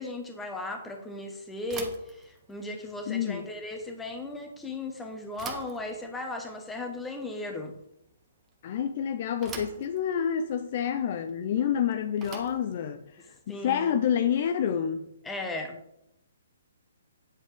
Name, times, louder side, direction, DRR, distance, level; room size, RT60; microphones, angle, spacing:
voice 1, 0.0-7.7 13.5-14.0 15.2-15.8, left 2 dB, 10° left, 1.5 m, -36 dB
Bicycle / Thump thud, 1.6-14.7, right 5 dB, 15° right, 1.4 m, -47 dB
voice 2, 3.1-3.5 8.6-15.1, left 8 dB, 45° left, 0.6 m, -28 dB
9.5 x 8.1 x 3.7 m
figure-of-eight pair, 130°, 0 cm